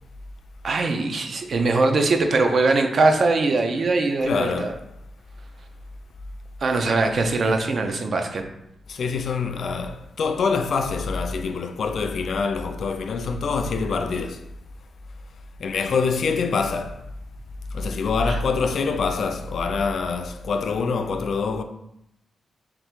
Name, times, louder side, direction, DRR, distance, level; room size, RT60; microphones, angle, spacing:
voice 1, 0.6-4.7 6.6-8.4 18.2-18.4, right 3 dB, 50° right, 0.4 m, -21 dB
voice 2, 4.2-4.9 8.9-14.4 15.6-17.0 17.7-21.6, left 4 dB, 65° left, 0.3 m, -25 dB
3.4 x 2.5 x 4.4 m
wide cardioid pair, 150°, 0 cm